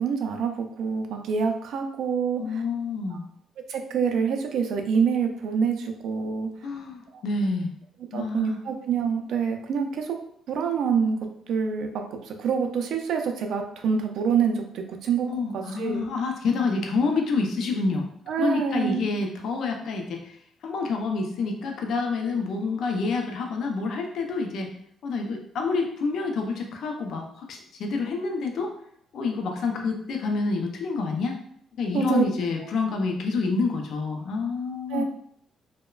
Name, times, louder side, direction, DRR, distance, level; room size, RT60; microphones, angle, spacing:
voice 1, 0.0-2.6 3.1-3.2 3.7-6.5 8.1-10.2 10.5-11.2 11.5-15.3 15.5-16.1 18.3-19.1 31.9-32.2 34.9-35.0, right 6 dB, 75° right, 5 dB, 0.3 m, -26 dB
voice 2, 2.4-3.2 6.6-7.7 8.1-8.6 15.3-18.1 18.4-20.4 20.6-24.7 25.0-28.7 29.1-31.4 31.8-35.0, left 4 dB, 70° left, 3 dB, 0.4 m, -28 dB
2.9 x 2.0 x 2.3 m, 0.68 s
cardioid pair, 105°, 0 cm